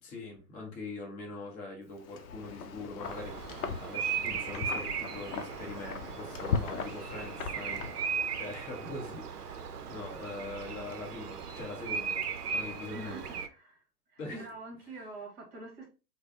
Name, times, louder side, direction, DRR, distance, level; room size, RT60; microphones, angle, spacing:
voice 1, 0.0-3.3 3.8-12.2 12.5-13.4 14.2-14.5 14.9-15.0, left 3 dB, 15° left, 0.6 m, -43 dB
Wind, 2.0-8.5, left 6 dB, 60° left, 0.6 m, -38 dB
Bird vocalization bird call bird song, 3.0-13.5, right 6 dB, 75° right, 0.5 m, -37 dB
voice 2, 12.9-13.8 14.1-15.9, right 2 dB, 30° right, 1.1 m, -46 dB
3.3 x 2.0 x 2.3 m
figure-of-eight pair, 105°, 48 cm